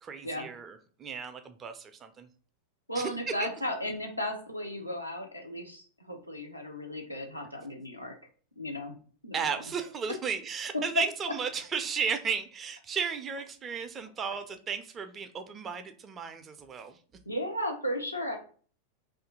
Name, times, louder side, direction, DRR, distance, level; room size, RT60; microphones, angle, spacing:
voice 1, 0.0-2.3 3.0-3.1 3.4-3.5 9.3-17.0, right 6 dB, 25° right, 8 dB, 0.4 m, -34 dB
voice 2, 2.9-8.1 8.6-8.9 9.2-9.5 17.3-18.4, equal, 90° left, 1 dB, 0.6 m, -35 dB
2.7 x 2.4 x 3.6 m, 0.43 s
figure-of-eight pair, 90°, 0 cm